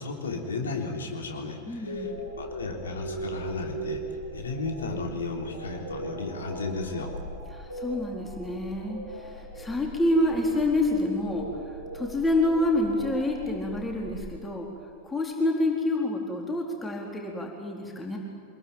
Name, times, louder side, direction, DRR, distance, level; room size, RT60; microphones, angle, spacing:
voice 1, 0.0-2.1 2.4-7.1, left 3 dB, 70° left, 2 dB, 3.4 m, -34 dB
voice 2, 1.7-2.2 7.5-11.5 11.9-14.7 15.0-18.2, left 1 dB, 10° left, 0 dB, 4.0 m, -27 dB
sound 1, 1.8-14.2, right 1 dB, 85° left, 8.0 m, -39 dB
26.0 x 21.5 x 9.2 m, 2.2 s
figure-of-eight pair, 90°, 0 cm